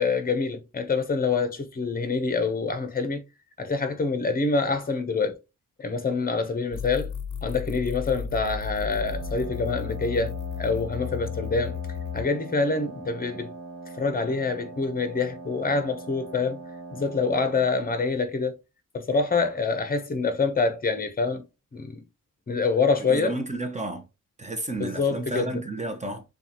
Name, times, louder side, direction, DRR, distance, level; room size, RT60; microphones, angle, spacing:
voice 1, 0.0-3.2 3.6-5.4 5.8-7.1 7.4-11.8 12.1-13.5 14.0-16.6 16.9-18.6 18.9-21.5 21.7-22.0 22.5-23.3 24.8-25.6, left 4 dB, 30° left, 0.8 m, -26 dB
sound 1, 6.7-12.3, left 7 dB, 65° left, 0.5 m, -34 dB
Wind instrument woodwind instrument, 8.8-18.1, right 3 dB, 50° right, 0.8 m, -41 dB
voice 2, 23.0-24.1 24.4-26.2, right 2 dB, 20° right, 0.7 m, -32 dB
6.8 x 2.4 x 2.9 m
wide cardioid pair, 130°, 31 cm